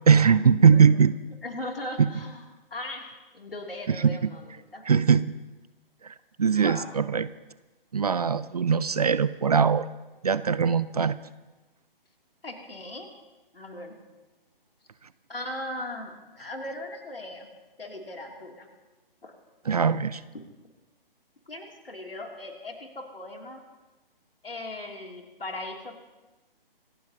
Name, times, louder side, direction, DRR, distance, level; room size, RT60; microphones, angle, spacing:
voice 1, 0.1-1.1 2.0-2.1 3.9-4.3 4.9-5.3 6.4-7.3 7.9-9.8 10.2-11.2 19.7-20.2, right 6 dB, 40° right, 17 dB, 0.5 m, -21 dB
voice 2, 1.4-2.4 2.7-4.4 4.7-4.8 6.5-6.9 12.4-13.1 13.5-13.9 15.3-17.5 17.8-18.7 19.2-19.3 21.5-23.6 24.4-26.0, left 1 dB, 75° left, 2 dB, 3.1 m, -38 dB
26.5 x 14.5 x 2.9 m, 1.1 s
figure-of-eight pair, 140°, 29 cm